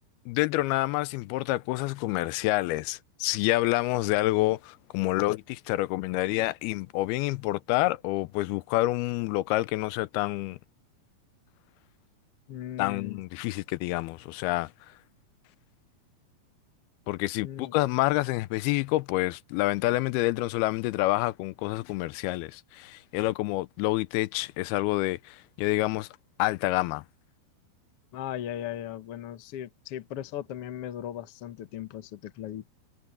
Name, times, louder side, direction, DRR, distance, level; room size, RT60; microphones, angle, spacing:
voice 1, 0.3-10.6 12.8-14.7 17.1-26.1 26.4-27.0, left 18 dB, 80° left, 2.4 m, -28 dB
voice 2, 12.5-13.2 17.4-17.7 28.1-32.7, left 11 dB, 65° left, 1.4 m, -38 dB
omnidirectional pair, 4.5 m